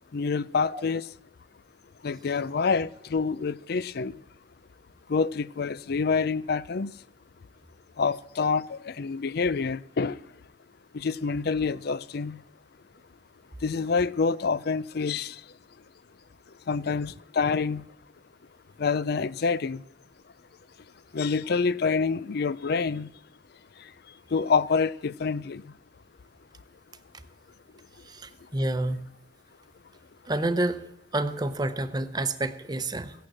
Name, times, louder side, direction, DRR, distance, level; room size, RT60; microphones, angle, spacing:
voice 1, 0.1-1.0 2.0-4.1 5.1-6.9 8.0-10.2 10.9-12.4 13.6-15.4 16.7-17.8 18.8-19.8 21.1-23.1 24.3-25.6, left 5 dB, 60° left, 0.5 m, -27 dB
voice 2, 28.0-29.1 30.3-30.8 31.1-33.1, right 1 dB, 25° right, 0.8 m, -29 dB
16.5 x 9.2 x 7.5 m
head